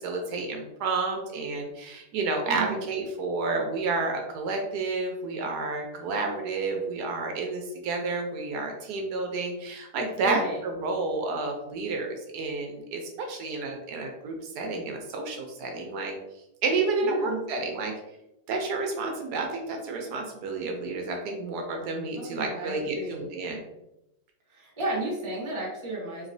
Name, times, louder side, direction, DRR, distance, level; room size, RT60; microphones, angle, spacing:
voice 1, 0.0-16.1 16.6-17.9 18.5-23.6, right 3 dB, 75° right, 3 dB, 1.1 m, -30 dB
voice 2, 2.5-2.8 10.2-10.6 17.0-17.4 22.1-23.3 24.5-26.3, right 2 dB, 20° right, -3 dB, 0.9 m, -33 dB
4.2 x 3.0 x 2.6 m, 0.90 s
omnidirectional pair, 1.8 m